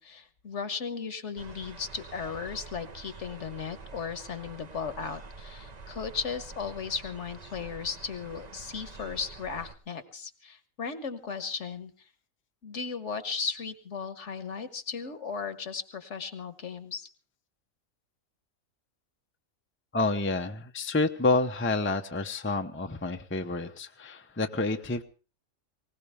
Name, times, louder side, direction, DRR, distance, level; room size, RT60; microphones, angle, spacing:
voice 1, 0.0-12.1 12.6-17.1, left 5 dB, 60° left, 11 dB, 1.5 m, -36 dB
sound 1, 1.4-9.7, right 4 dB, 35° right, 0.9 m, -47 dB
voice 2, 19.9-25.0, left 3 dB, 10° left, 6 dB, 0.7 m, -29 dB
20.0 x 19.0 x 3.5 m, 0.35 s
omnidirectional pair, 1.4 m